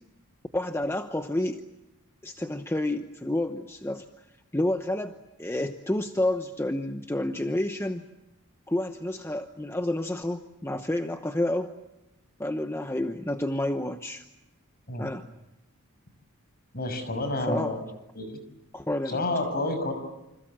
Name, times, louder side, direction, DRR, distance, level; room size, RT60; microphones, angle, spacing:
voice 1, 0.5-1.6 2.2-4.0 4.5-5.1 5.4-8.0 8.7-11.7 12.4-14.2 15.0-15.3 17.5-17.7 18.7-19.2, left 1 dB, 10° left, 7 dB, 0.9 m, -29 dB
voice 2, 16.7-17.8 18.1-18.4 19.1-19.9, left 2 dB, 45° left, 8 dB, 6.1 m, -29 dB
29.0 x 26.5 x 7.5 m, 0.94 s
head